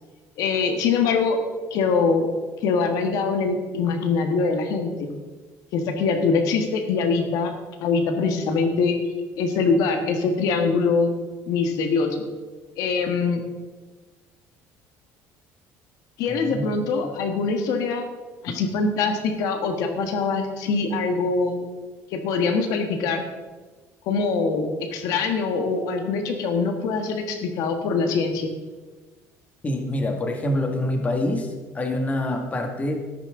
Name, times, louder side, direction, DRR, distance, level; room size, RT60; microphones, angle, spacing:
voice 1, 0.4-1.4 1.7-2.3 2.6-5.1 5.7-7.5 7.8-8.9 9.4-11.1 11.5-12.2 12.8-13.4 16.2-18.1 18.4-21.7 22.1-23.2 24.0-28.5, left 4 dB, 75° left, 5 dB, 1.5 m, -23 dB
voice 2, 16.3-16.7 29.6-33.0, left 1 dB, 25° left, 3 dB, 1.9 m, -26 dB
13.0 x 12.0 x 3.8 m, 1.3 s
cardioid pair, 125°, 6 cm